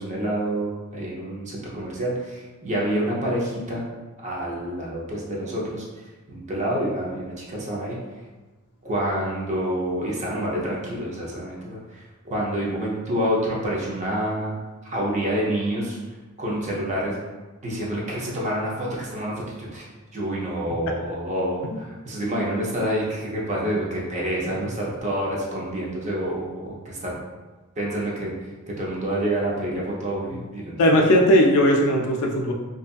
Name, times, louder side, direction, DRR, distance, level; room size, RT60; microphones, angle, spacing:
voice 1, 0.0-3.8 4.2-5.8 6.3-8.0 8.8-14.5 14.8-16.0 16.4-17.2 17.6-19.9 20.1-27.2 27.8-28.3 28.8-30.7, right 1 dB, 35° right, -4 dB, 0.6 m, -27 dB
voice 2, 30.8-32.5, equal, 80° left, 1 dB, 0.3 m, -18 dB
2.6 x 2.4 x 2.3 m, 1.3 s
head